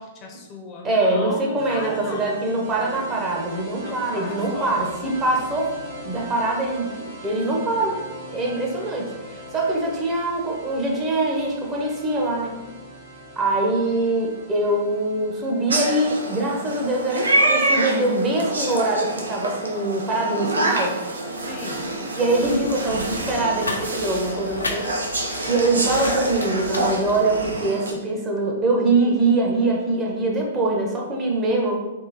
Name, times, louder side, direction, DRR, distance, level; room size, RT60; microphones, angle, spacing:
voice 1, 0.0-2.4 3.8-5.0 21.4-21.8, left 3 dB, 30° left, 0 dB, 0.5 m, -36 dB
voice 2, 0.8-5.7 6.0-8.0 8.3-12.5 13.4-21.0 22.2-24.9 25.4-31.8, right 2 dB, 20° right, -1 dB, 0.7 m, -23 dB
sound 1, 1.6-18.5, right 1 dB, 50° right, 1.2 m, -40 dB
sound 2, 15.7-27.9, right 1 dB, 75° right, 0.5 m, -26 dB
sound 3, 22.4-27.6, left 2 dB, 80° left, 0.5 m, -34 dB
3.6 x 2.5 x 2.8 m, 1.1 s
figure-of-eight pair, 110°, 0 cm